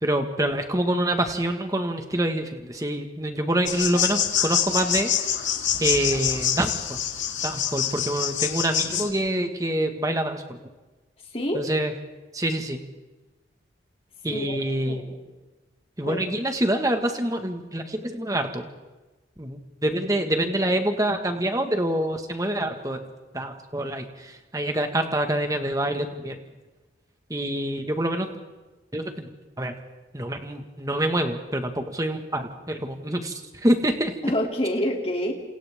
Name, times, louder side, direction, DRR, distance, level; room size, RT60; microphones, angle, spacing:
voice 1, 0.0-5.1 5.8-7.0 7.4-10.6 11.5-11.9 12.3-12.8 14.2-15.0 16.0-18.7 19.4-23.0 23.3-26.4 27.3-28.4 28.9-29.3 29.6-29.7 30.1-34.1, right 1 dB, 20° right, 5 dB, 1.7 m, -26 dB
sound 1, 3.7-9.1, left 9 dB, 85° left, 2.1 m, -26 dB
voice 2, 11.3-11.7 14.3-14.5 14.8-15.2 16.0-16.2 34.2-35.3, equal, 30° left, 1 dB, 3.0 m, -27 dB
29.5 x 27.5 x 3.7 m, 1.2 s
head